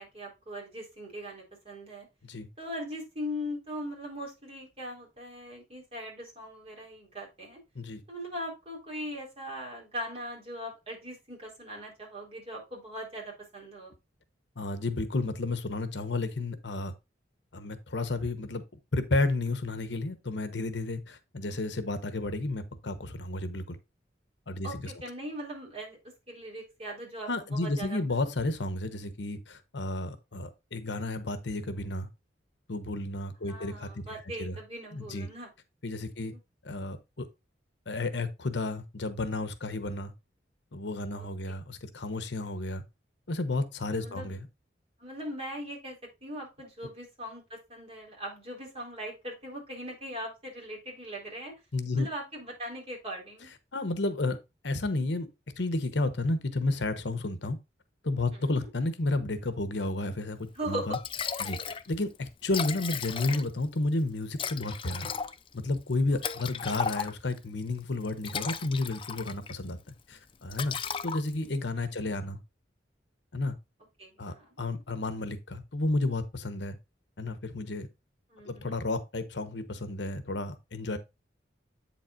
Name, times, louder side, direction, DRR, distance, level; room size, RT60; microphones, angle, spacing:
voice 1, 0.0-2.1 2.6-7.6 8.1-13.9 24.6-26.0 26.3-28.0 33.4-35.5 36.2-36.4 43.9-44.4 45.0-51.5 51.9-53.5 58.3-58.6 60.5-61.0 66.6-66.7 71.8-72.1 74.0-74.6 78.3-78.7, equal, 30° right, 4.0 m, -40 dB
voice 2, 14.6-16.9 17.5-18.6 18.9-23.8 24.5-24.9 27.3-32.1 32.7-34.1 34.4-34.6 34.9-35.3 35.8-36.3 36.6-37.3 37.9-40.1 40.7-42.8 43.3-44.5 51.7-52.1 53.7-54.4 54.6-55.3 55.6-57.6 58.0-61.0 61.4-65.1 65.5-69.8 70.1-70.7 71.0-72.4 73.3-73.5 74.2-76.8 77.2-77.9 78.4-81.0, left 2 dB, 65° left, 1.0 m, -32 dB
Liquid, 60.6-60.7 60.9-61.9 62.1-62.2 62.4-63.7 64.4-67.4 68.0-69.6 69.9-70.1 70.5-71.6, left 6 dB, 30° left, 0.5 m, -35 dB
8.3 x 7.3 x 2.5 m
head